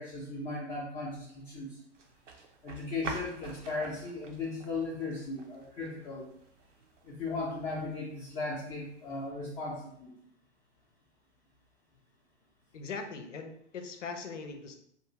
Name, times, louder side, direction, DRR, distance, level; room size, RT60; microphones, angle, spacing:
voice 1, 0.0-1.8 2.6-6.3 7.0-10.1, left 3 dB, 20° left, -6 dB, 0.4 m, -37 dB
sound 1, 1.9-9.3, right 4 dB, 85° right, 0.7 m, -48 dB
voice 2, 12.7-14.8, left 4 dB, 85° left, 6 dB, 0.6 m, -40 dB
2.6 x 2.4 x 2.8 m, 0.71 s
hypercardioid pair, 120°, 36 cm